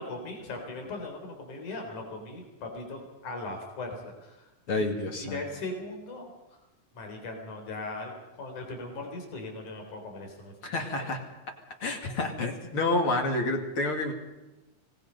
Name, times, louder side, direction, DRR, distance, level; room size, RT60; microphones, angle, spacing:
voice 1, 0.0-4.4 4.7-4.9 5.2-6.3 6.9-8.1 8.4-10.5, left 2 dB, 85° left, 3 dB, 5.4 m, -39 dB
voice 2, 4.7-5.4 10.6-11.2 11.8-14.1, left 2 dB, 45° left, 3 dB, 3.0 m, -29 dB
25.5 x 19.0 x 5.4 m, 1.0 s
omnidirectional pair, 3.4 m